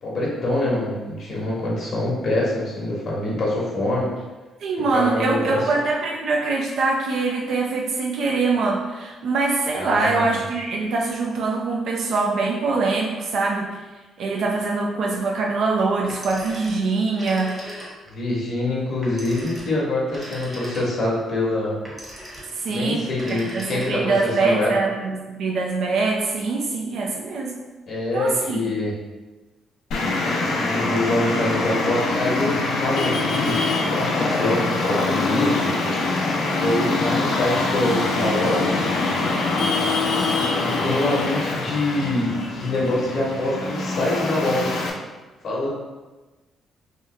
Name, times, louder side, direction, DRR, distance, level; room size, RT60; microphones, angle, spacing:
voice 1, 0.0-4.1 4.8-5.6 9.8-10.4 18.1-21.8 22.7-24.7 27.9-28.9 30.5-33.5 33.8-35.7 36.5-38.7 40.3-44.7 45.4-45.7, left 1 dB, 65° left, -4 dB, 0.9 m, -25 dB
voice 2, 4.6-13.8 14.2-17.6 22.5-27.5 28.1-28.7, right 3 dB, 70° right, -1 dB, 0.4 m, -23 dB
Telephone, 16.0-18.2 19.0-21.2 21.8-22.6 23.1-24.2, equal, 25° right, 1.0 m, -38 dB
Traffic noise roadway noise, 29.9-44.9, left 3 dB, 80° left, 0.5 m, -24 dB
3.0 x 2.3 x 3.1 m, 1.2 s
cardioid pair, 90°, 0 cm